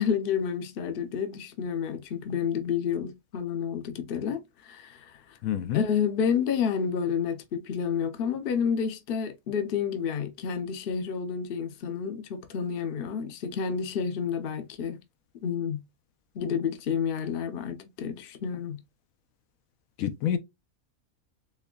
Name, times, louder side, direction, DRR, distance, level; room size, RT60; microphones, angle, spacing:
voice 1, 0.0-5.4 5.7-15.0 15.4-15.8 16.3-18.8, left 7 dB, 50° left, 0.8 m, -30 dB
voice 2, 5.4-5.8 20.0-20.4, left 10 dB, 80° left, 1.0 m, -27 dB
4.6 x 3.4 x 2.3 m
omnidirectional pair, 1.5 m